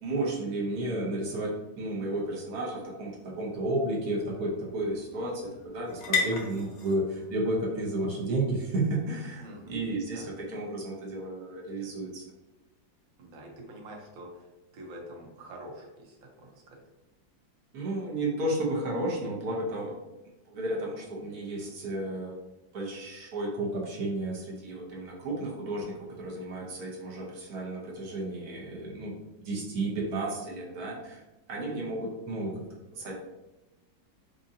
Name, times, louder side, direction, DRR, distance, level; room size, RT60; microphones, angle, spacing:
voice 1, 0.0-12.2 17.7-20.0 20.4-22.4 22.7-29.1 29.4-31.2 31.5-33.1, right 2 dB, 60° right, -2 dB, 1.2 m, -32 dB
sound 1, 2.9-10.4, left 4 dB, 65° left, 1.2 m, -38 dB
voice 2, 9.4-9.8 10.1-10.3 13.2-16.8, right 1 dB, 80° right, 0 dB, 1.6 m, -46 dB
4.8 x 2.6 x 2.6 m, 1.0 s
omnidirectional pair, 2.1 m